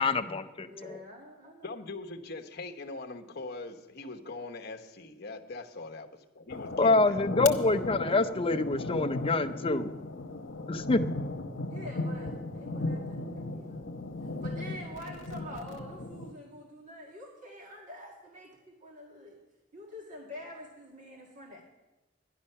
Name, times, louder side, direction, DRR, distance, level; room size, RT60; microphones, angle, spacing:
voice 1, 0.0-1.0 6.8-9.9 10.7-11.0, left 3 dB, 30° left, 9 dB, 0.6 m, -26 dB
voice 2, 0.6-1.7 11.7-13.9 14.2-19.4 19.7-21.6, equal, 40° right, -2 dB, 1.9 m, -46 dB
voice 3, 1.6-6.1 6.4-7.5, left 3 dB, 55° left, 4 dB, 1.1 m, -42 dB
sound 1, 6.5-16.3, left 2 dB, 85° left, 1.0 m, -36 dB
12.5 x 11.0 x 5.6 m, 1.1 s
head